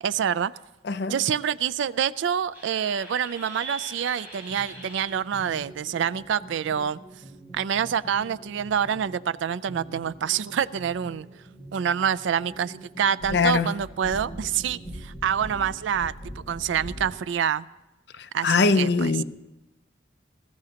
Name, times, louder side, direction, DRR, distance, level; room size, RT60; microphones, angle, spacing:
voice 1, 0.0-0.5 1.1-7.0 7.5-11.3 11.7-17.7 18.3-19.1, right 8 dB, 75° right, 0.3 m, -27 dB
voice 2, 0.8-1.2 13.3-13.7 18.2-19.2, left 4 dB, 60° left, 0.5 m, -22 dB
sound 1, 2.5-17.2, right 1 dB, 10° right, 6.2 m, -42 dB
20.0 x 14.0 x 2.9 m
head